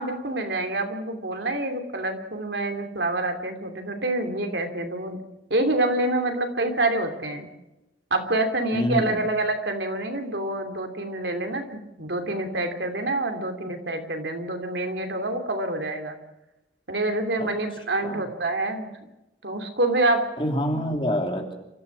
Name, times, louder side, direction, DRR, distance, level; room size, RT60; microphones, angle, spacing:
voice 1, 0.0-5.2 5.5-7.5 8.1-11.6 12.0-16.2 16.9-18.9 19.4-20.2, right 2 dB, 70° right, 6 dB, 2.9 m, -27 dB
voice 2, 8.7-9.2 17.4-17.5 18.0-18.2 20.4-21.5, equal, 30° left, 3 dB, 3.2 m, -26 dB
28.0 x 14.0 x 7.3 m, 0.95 s
head